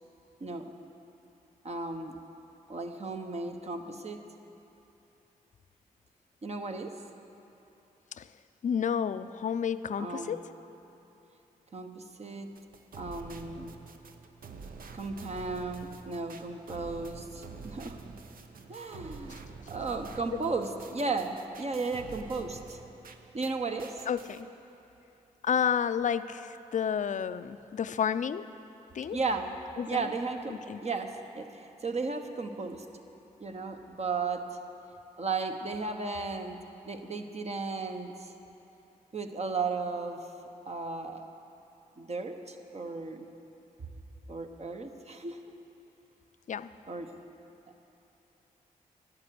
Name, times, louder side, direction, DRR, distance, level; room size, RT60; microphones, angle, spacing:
voice 1, 1.6-2.2 2.7-4.2 6.4-6.9 10.0-10.3 11.7-12.5 12.9-13.7 14.9-18.1 18.7-19.3 19.7-22.8 23.3-24.1 29.1-29.5 29.9-32.8 33.4-34.6 35.2-36.6 36.8-38.3 39.1-40.3 40.7-41.2 42.0-43.2 44.3-45.4 46.9-47.1, right 4 dB, 45° right, 5 dB, 1.0 m, -35 dB
voice 2, 8.6-10.4 20.3-20.4 24.1-24.5 25.4-28.5 28.9-29.2 29.8-30.1 30.5-30.8 46.5-46.7, left 7 dB, 55° left, 13 dB, 0.5 m, -30 dB
sound 1, 12.5-23.5 23.8-24.4, right 5 dB, 70° right, 0.8 m, -47 dB
11.5 x 9.0 x 7.8 m, 2.9 s
cardioid pair, 55°, 15 cm